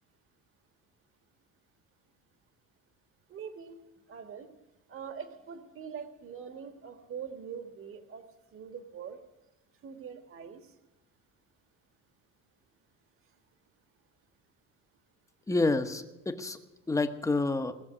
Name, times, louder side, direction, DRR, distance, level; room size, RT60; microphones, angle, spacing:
voice 1, 3.3-3.8 4.1-4.5 4.9-8.2 8.5-9.2 9.8-10.6, right 7 dB, 40° right, 7 dB, 1.6 m, -43 dB
voice 2, 15.5-16.6 16.9-17.7, left 3 dB, 10° left, 7 dB, 1.0 m, -28 dB
19.0 x 7.2 x 9.8 m, 1.1 s
cardioid pair, 150°, 32 cm